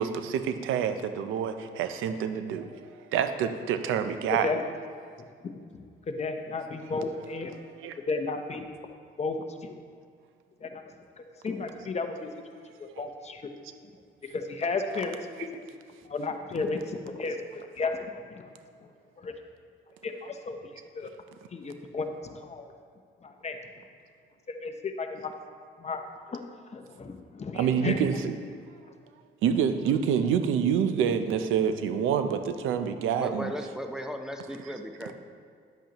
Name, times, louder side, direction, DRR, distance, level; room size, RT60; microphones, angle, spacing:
voice 1, 0.0-4.5 7.7-7.9 13.0-13.1 15.4-15.5 27.5-28.3 29.4-33.5, right 8 dB, 90° right, 9 dB, 0.6 m, -27 dB
voice 2, 5.2-5.6 6.1-7.6 8.1-8.7 9.2-9.4 9.6-9.8 10.6-10.8 11.2-12.3 12.8-13.4 14.3-15.2 16.0-18.4 19.2-19.3 20.0-20.6 20.9-21.1 21.5-22.7 23.2-23.6 24.5-25.3 25.8-26.0 26.7-28.0, left 3 dB, 35° left, 6 dB, 0.8 m, -33 dB
voice 3, 33.2-35.1, equal, 5° right, 4 dB, 0.7 m, -36 dB
10.5 x 7.9 x 3.0 m, 2.1 s
cardioid pair, 90°, 20 cm